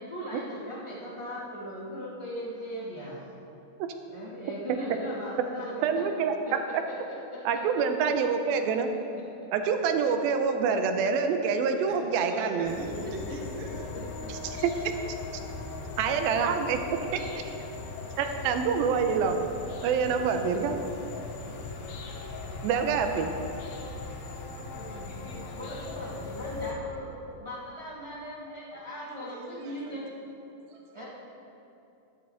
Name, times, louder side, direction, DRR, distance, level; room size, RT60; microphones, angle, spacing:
voice 1, 0.0-3.2 4.1-6.0 6.4-6.5 6.9-7.0 7.3-7.8 8.2-8.3 13.0-13.1 24.7-30.1 30.9-31.1, equal, 15° right, -7 dB, 1.0 m, -39 dB
voice 2, 5.8-6.4 7.5-8.9 9.5-12.8 14.3-14.7 16.0-17.3 18.2-19.4 19.8-20.8 22.6-23.3, right 6 dB, 90° right, 6 dB, 2.5 m, -26 dB
voice 3, 11.9-14.0 14.5-14.6 15.4-15.5 17.7-17.8 18.1-18.5 28.7-30.0 30.6-31.1, right 1 dB, 70° right, 0 dB, 2.9 m, -42 dB
sound 1, 12.7-26.7, left 3 dB, 90° left, 3.0 m, -39 dB
12.5 x 11.5 x 4.0 m, 2.8 s
omnidirectional pair, 4.3 m